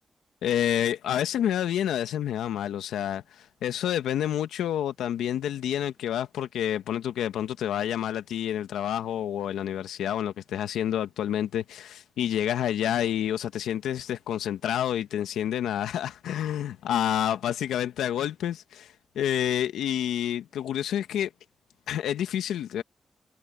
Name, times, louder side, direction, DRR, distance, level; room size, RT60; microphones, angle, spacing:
voice 1, 0.4-21.3 21.9-22.8, left 10 dB, 85° left, 1.6 m, -28 dB
supercardioid pair, 40°, 0 cm